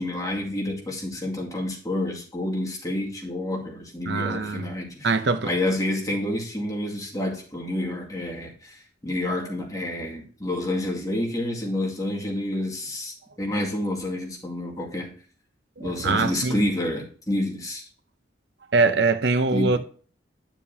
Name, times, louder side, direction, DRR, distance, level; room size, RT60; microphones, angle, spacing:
voice 1, 0.0-5.1 5.4-15.1 15.8-17.9 19.5-19.8, left 1 dB, 20° left, 2.2 m, -29 dB
voice 2, 4.1-4.7 5.0-5.5 9.3-9.4 15.8-16.6 18.7-19.8, right 3 dB, 70° right, 0.7 m, -23 dB
10.5 x 7.0 x 2.8 m
head